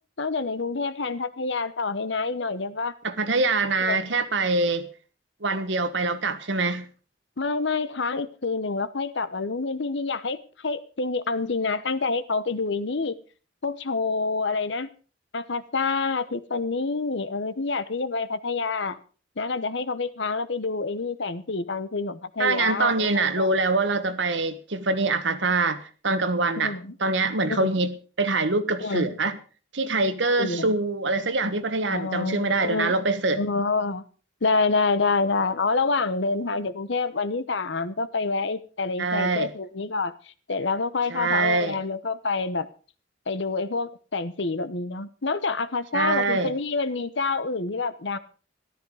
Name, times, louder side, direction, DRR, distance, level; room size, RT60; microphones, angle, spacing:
voice 1, 0.2-2.9 3.8-4.0 7.4-13.1 13.6-14.9 15.3-19.0 19.4-23.5 26.6-26.9 27.5-27.7 28.8-29.2 30.4-30.8 31.9-33.0 33.4-34.0 34.4-40.1 40.5-42.7 43.3-48.2, left 4 dB, 70° left, 1.0 m, -27 dB
voice 2, 3.0-4.9 5.4-6.9 22.4-25.8 26.0-26.7 27.0-29.4 29.7-33.4 39.0-39.5 41.1-41.8 45.9-46.5, right 3 dB, 70° right, 1.4 m, -24 dB
14.0 x 13.0 x 4.9 m
head